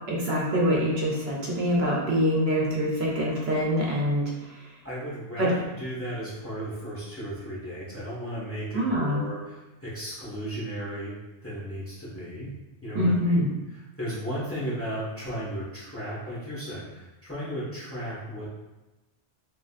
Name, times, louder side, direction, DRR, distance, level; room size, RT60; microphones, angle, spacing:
voice 1, 0.1-4.6 5.4-5.6 8.7-9.2 12.9-13.5, equal, 65° right, -4 dB, 1.0 m, -25 dB
voice 2, 4.8-11.1 11.4-12.5 12.8-13.4 13.7-18.5, equal, 10° left, -9 dB, 1.3 m, -35 dB
6.2 x 2.7 x 2.4 m, 1.1 s
omnidirectional pair, 1.2 m